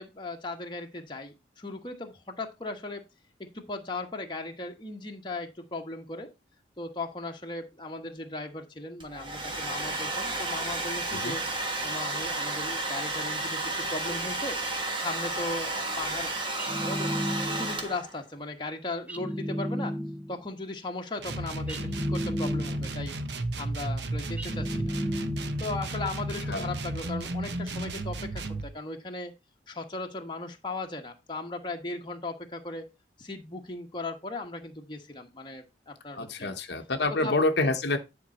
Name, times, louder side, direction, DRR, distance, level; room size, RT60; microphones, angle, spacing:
voice 1, 0.0-3.0 3.4-6.3 6.8-11.4 11.8-14.6 15.0-16.3 16.8-17.1 17.5-20.0 20.3-23.1 23.6-24.9 25.6-29.3 29.7-32.8 33.2-36.5 37.1-37.3, left 2 dB, 25° left, 1.2 m, -37 dB
Domestic sounds home sounds, 9.0-18.2, right 2 dB, 25° right, 1.5 m, -32 dB
sound 1, 16.6-17.9 19.1-20.4 21.7-23.0 24.4-25.7, equal, 10° right, 0.8 m, -33 dB
sound 2, 21.2-28.7, right 1 dB, 60° right, 0.9 m, -33 dB
voice 2, 36.1-38.0, left 2 dB, 60° left, 0.9 m, -27 dB
10.5 x 4.7 x 4.2 m
head